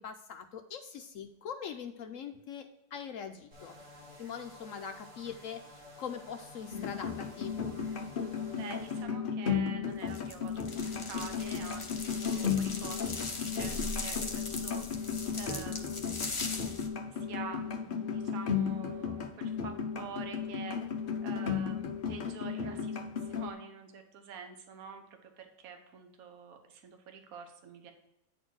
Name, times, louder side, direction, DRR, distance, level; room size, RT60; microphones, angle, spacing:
voice 1, 0.0-3.8 4.2-7.6, left 7 dB, 70° left, 7 dB, 0.8 m, -42 dB
sound 1, 3.5-9.0, left 1 dB, 85° right, 3.8 m, -52 dB
sound 2, 6.7-23.5, left 6 dB, 90° left, 0.4 m, -35 dB
voice 2, 8.5-16.5 17.1-20.8 21.2-27.9, right 6 dB, 55° right, 5 dB, 1.3 m, -47 dB
sound 3, 10.1-16.9, left 3 dB, 30° left, 0.6 m, -40 dB
9.3 x 4.3 x 4.6 m, 0.87 s
omnidirectional pair, 1.9 m